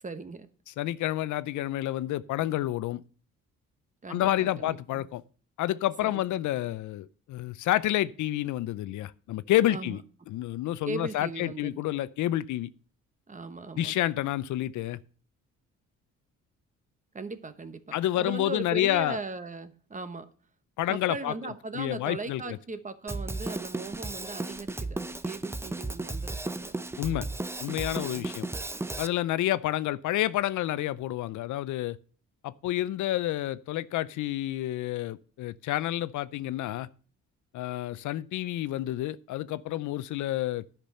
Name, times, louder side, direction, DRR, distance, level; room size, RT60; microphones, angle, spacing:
voice 1, 0.0-0.5 4.0-5.1 6.0-6.2 9.7-10.0 10.8-11.8 13.3-14.0 17.1-20.3 20.9-26.7 28.1-28.6, right 3 dB, 25° right, 1.1 m, -39 dB
voice 2, 0.8-3.0 4.1-5.2 5.6-10.0 10.3-12.7 13.8-15.0 17.9-19.2 20.8-21.3 21.7-22.6 27.0-27.3 27.6-28.5 29.0-32.0 32.4-36.9 37.5-40.6, left 14 dB, 80° left, 0.6 m, -29 dB
Drum kit, 23.1-29.1, right 2 dB, 10° right, 0.5 m, -35 dB
10.0 x 6.0 x 6.6 m
cardioid pair, 90°, 30 cm